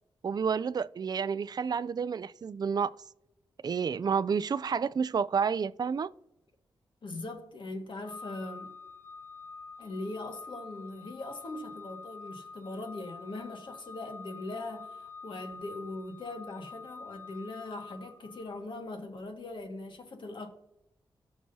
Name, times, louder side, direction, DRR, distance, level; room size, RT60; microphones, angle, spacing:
voice 1, 0.2-2.9 3.6-6.1, right 6 dB, 45° right, 0.4 m, -30 dB
voice 2, 7.0-8.7 9.8-20.5, left 2 dB, 60° left, 1.7 m, -40 dB
Organ, 8.0-18.8, left 4 dB, 30° left, 1.7 m, -47 dB
18.0 x 6.1 x 2.8 m
cardioid pair, 55°, 9 cm